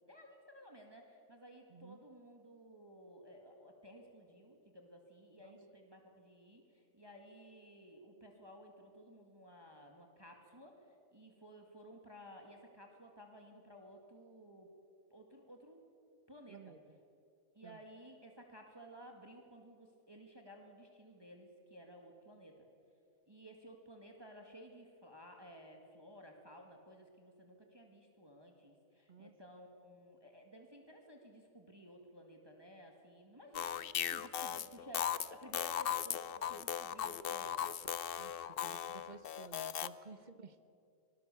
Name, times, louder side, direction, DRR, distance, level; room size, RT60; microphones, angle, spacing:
voice 1, 0.1-14.7 15.1-15.9 16.3-16.6 17.6-22.7 23.3-37.7, equal, 20° right, 2 dB, 2.0 m, -56 dB
voice 2, 16.5-17.0 17.6-17.8 29.1-29.3 38.2-40.6, right 5 dB, 35° right, 11 dB, 1.0 m, -55 dB
sound 1, 33.5-39.9, left 9 dB, 55° left, 0.7 m, -38 dB
25.0 x 19.0 x 7.0 m, 2.6 s
omnidirectional pair, 1.4 m